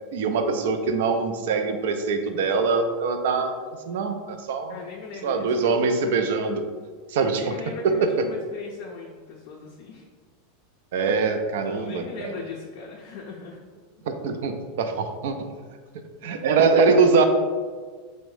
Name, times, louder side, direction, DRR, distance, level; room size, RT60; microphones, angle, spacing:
voice 1, 0.1-3.5 3.9-4.8 5.2-6.7 7.1-7.6 7.8-8.3 10.9-12.3 14.1-15.5 16.2-17.2, right 4 dB, 75° right, 7 dB, 0.3 m, -23 dB
voice 2, 4.7-5.9 7.4-10.1 11.7-13.7 16.2-16.5, left 4 dB, 65° left, -1 dB, 0.4 m, -39 dB
3.4 x 2.1 x 3.1 m, 1.5 s
hypercardioid pair, 115°, 0 cm